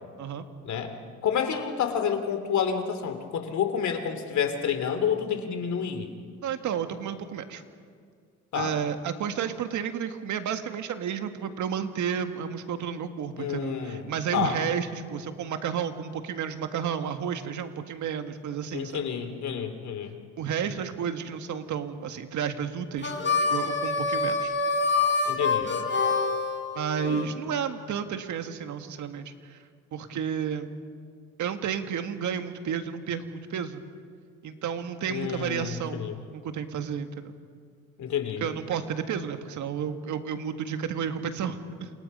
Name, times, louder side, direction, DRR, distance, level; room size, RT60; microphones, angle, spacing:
voice 1, 1.2-6.1 8.5-8.7 13.4-14.0 14.3-14.6 18.7-20.1 25.2-25.7 27.0-27.2 35.1-36.2 38.0-38.4, left 7 dB, 70° left, 7 dB, 2.9 m, -29 dB
voice 2, 6.4-7.6 8.5-19.0 20.4-23.1 23.4-24.5 26.7-29.6 29.9-30.7 31.4-33.8 34.4-37.3 38.4-41.9, right 7 dB, 75° right, 7 dB, 1.8 m, -32 dB
Harmonica, 23.0-27.3, left 4 dB, 40° left, 4.2 m, -26 dB
29.0 x 28.0 x 5.5 m, 2.1 s
cardioid pair, 90°, 30 cm